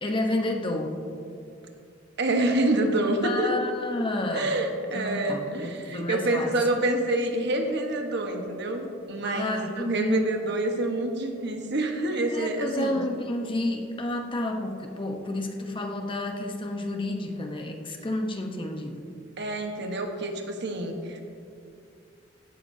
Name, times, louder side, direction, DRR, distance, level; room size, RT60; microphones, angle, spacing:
voice 1, 0.0-1.0 3.2-4.6 4.9-6.6 9.2-10.3 12.3-19.0, left 1 dB, 25° left, 3 dB, 0.9 m, -30 dB
voice 2, 2.2-3.5 4.3-13.0 19.4-21.2, right 2 dB, 60° right, 3 dB, 1.3 m, -27 dB
16.0 x 12.5 x 2.8 m, 2.5 s
head